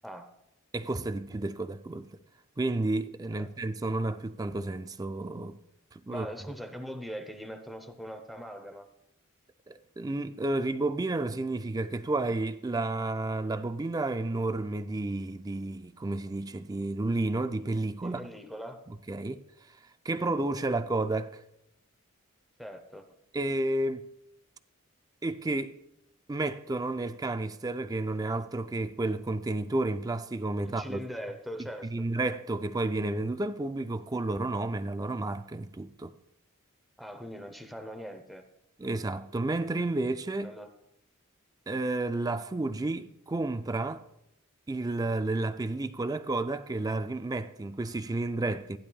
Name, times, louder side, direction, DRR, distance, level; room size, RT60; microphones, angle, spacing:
voice 1, 0.7-2.1 2.6-5.6 5.9-6.3 9.7-18.2 19.1-19.4 20.0-21.4 23.3-24.1 25.2-25.7 26.3-31.0 31.9-36.1 38.8-40.5 41.7-44.0 44.7-48.8, right 2 dB, 15° right, 0.4 m, -31 dB
voice 2, 6.1-8.9 18.0-18.8 22.6-23.1 30.6-32.1 37.0-38.4 40.4-40.7, equal, ahead, 0.8 m, -41 dB
15.0 x 10.0 x 2.3 m
head